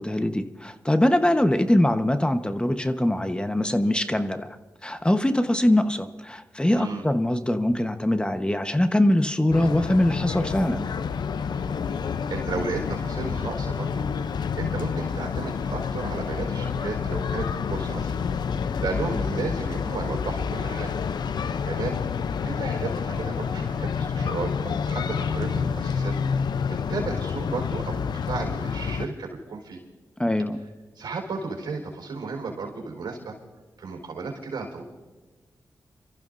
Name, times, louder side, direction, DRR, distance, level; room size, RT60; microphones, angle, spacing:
voice 1, 0.0-4.6 4.8-10.9 30.2-30.6, left 1 dB, 15° left, 8 dB, 1.1 m, -22 dB
voice 2, 6.7-7.1 11.5-11.7 12.3-14.0 14.6-18.2 18.8-20.9 21.6-22.0 22.4-26.1 26.9-29.8 30.9-33.3 33.8-34.8, right 4 dB, 85° right, 1 dB, 4.1 m, -33 dB
sound 1, 9.5-29.1, left 6 dB, 75° left, 0.6 m, -28 dB
29.0 x 14.5 x 2.6 m, 1.3 s
cardioid pair, 50°, 7 cm